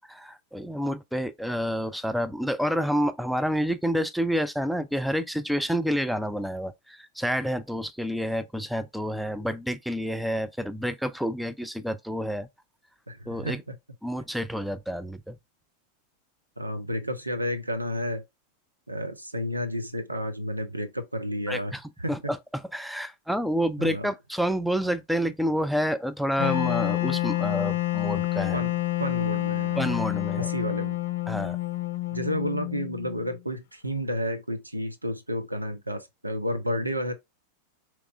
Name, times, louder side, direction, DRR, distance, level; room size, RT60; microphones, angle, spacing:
voice 1, 0.1-12.5 13.3-13.6 14.0-15.4 21.5-21.8 22.1-28.6 29.8-30.5 31.3-31.6, equal, ahead, 0.4 m, -29 dB
voice 2, 13.1-13.6 16.6-18.2 18.9-22.2 23.8-24.1 28.5-29.9 30.4-31.0 32.1-37.1, equal, 85° right, 0.6 m, -31 dB
Wind instrument woodwind instrument, 26.4-33.3, left 17 dB, 55° left, 0.6 m, -28 dB
4.7 x 3.0 x 2.4 m
figure-of-eight pair, 90°, 0 cm